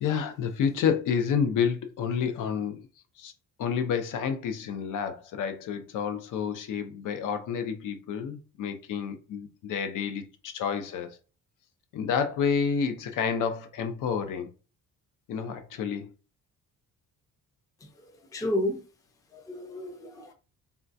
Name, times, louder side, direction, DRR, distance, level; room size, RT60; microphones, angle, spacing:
voice 1, 0.0-2.9 3.2-3.3 3.6-11.2 11.9-14.5 15.3-16.1, left 7 dB, 70° left, 0.7 m, -29 dB
voice 2, 18.3-18.8 19.3-20.3, left 1 dB, 10° left, 0.4 m, -31 dB
3.7 x 2.2 x 2.6 m
cardioid pair, 145°, 33 cm